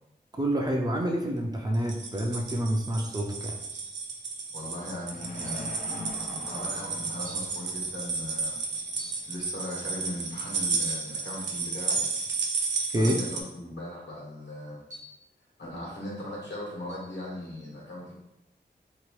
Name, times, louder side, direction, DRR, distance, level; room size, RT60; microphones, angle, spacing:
voice 1, 0.4-3.6 12.9-13.1, right 1 dB, 20° right, 1 dB, 0.4 m, -27 dB
sound 1, 1.7-13.4, right 4 dB, 85° right, 0.5 m, -32 dB
sound 2, 3.7-4.0 5.4-5.8 6.5-6.6 7.2-7.6 9.0-9.3 10.7-11.1 12.7-13.0 14.9-15.3 16.9-17.1, equal, 40° right, 0.8 m, -49 dB
voice 2, 4.5-5.7 6.2-8.8 9.3-12.0 12.9-14.8 15.6-18.1, left 1 dB, 80° left, -5 dB, 1.2 m, -39 dB
sound 3, 4.6-12.4, left 2 dB, 45° left, 0.5 m, -46 dB
2.9 x 2.3 x 3.0 m, 0.88 s
wide cardioid pair, 95°, 18 cm